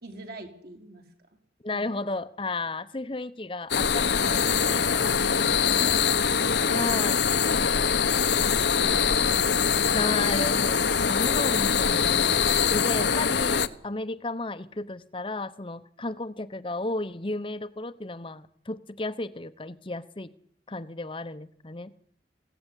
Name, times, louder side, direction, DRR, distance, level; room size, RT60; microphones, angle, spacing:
voice 1, 0.0-1.4 1.7-1.8 4.6-6.9 7.5-10.1, right 1 dB, 55° right, 4 dB, 4.2 m, -45 dB
voice 2, 1.6-4.8 6.7-7.2 9.9-20.3 20.7-21.9, left 2 dB, 30° left, 11 dB, 0.9 m, -33 dB
sound 1, 3.7-13.7, left 6 dB, 75° left, 1.1 m, -23 dB
21.5 x 17.0 x 10.0 m, 0.68 s
head